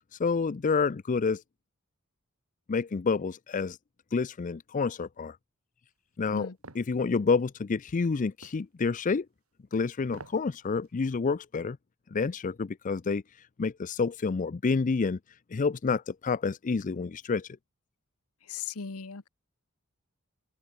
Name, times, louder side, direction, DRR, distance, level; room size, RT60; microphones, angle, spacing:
voice 1, 0.2-1.4 2.7-3.8 4.1-5.4 6.2-6.5 6.8-9.3 9.7-11.8 12.1-13.2 13.6-15.2 15.5-17.5, left 4 dB, 35° left, 0.4 m, -28 dB
sound 1, 6.6-6.9 8.4-8.6 10.0-10.5 10.9-11.0, right 3 dB, 75° right, 3.0 m, -47 dB
voice 2, 18.5-19.3, left 5 dB, 85° left, 1.2 m, -37 dB
open air
head